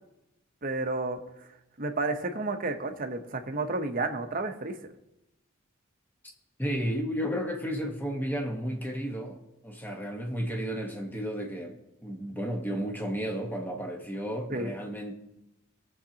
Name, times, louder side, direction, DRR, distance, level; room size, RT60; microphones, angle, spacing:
voice 1, 0.6-1.5 1.8-4.7 14.5-14.7, right 3 dB, 40° right, 0.9 m, -31 dB
voice 2, 6.6-15.1, equal, 10° left, 1.2 m, -33 dB
19.0 x 7.3 x 2.9 m
head